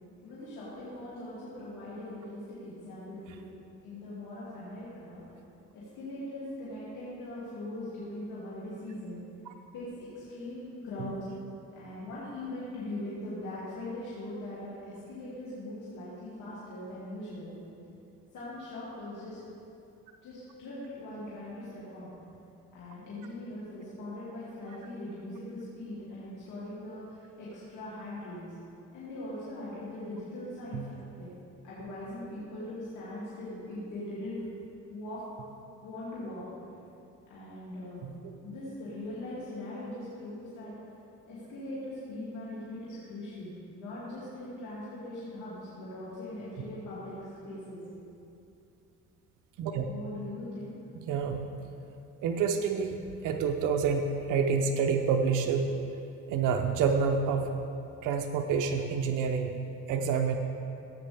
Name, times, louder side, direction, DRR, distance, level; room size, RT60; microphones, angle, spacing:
voice 1, 0.2-3.4 3.8-5.2 5.7-9.2 9.7-11.2 11.7-17.6 18.3-19.4 20.2-22.1 22.7-28.5 28.9-31.3 31.6-34.4 34.9-35.2 35.8-36.4 37.3-40.7 41.3-47.1 47.4-47.8 49.9-50.7, left 1 dB, 80° left, -9 dB, 2.6 m, -41 dB
voice 2, 51.1-51.5 52.2-53.0 53.2-55.7 56.3-57.5 58.0-59.6 59.9-60.3, right 6 dB, 90° right, 4 dB, 0.7 m, -28 dB
15.5 x 8.4 x 3.4 m, 2.7 s
cardioid pair, 90°, 30 cm